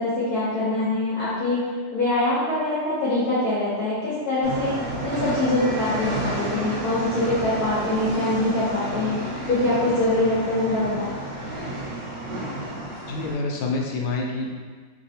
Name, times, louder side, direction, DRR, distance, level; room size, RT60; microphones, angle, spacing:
voice 1, 0.0-9.2 9.5-11.1, left 2 dB, 60° left, -10 dB, 1.1 m, -24 dB
sound 1, 4.4-13.3, right 1 dB, 50° right, 0.9 m, -31 dB
voice 2, 13.1-14.5, left 3 dB, 90° left, 0 dB, 1.4 m, -27 dB
3.3 x 2.8 x 2.7 m, 1.5 s
omnidirectional pair, 2.3 m